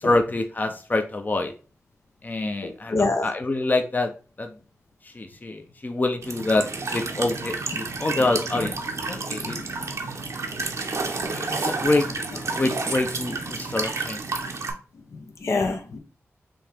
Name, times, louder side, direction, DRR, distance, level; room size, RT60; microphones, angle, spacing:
voice 1, 0.0-1.5 2.2-4.1 4.4-4.5 5.1-6.7 6.9-8.8 9.1-9.6 11.3-12.1 12.6-14.2, left 2 dB, 35° left, 0.6 m, -26 dB
voice 2, 2.6-3.3 8.5-8.7 9.4-9.6 15.1-16.0, left 3 dB, 70° left, 0.8 m, -27 dB
Walk footsteps / Chirp tweet / Stream, 6.2-14.7, right 3 dB, 70° right, 0.8 m, -30 dB
5.2 x 2.9 x 3.4 m
cardioid pair, 45°, 5 cm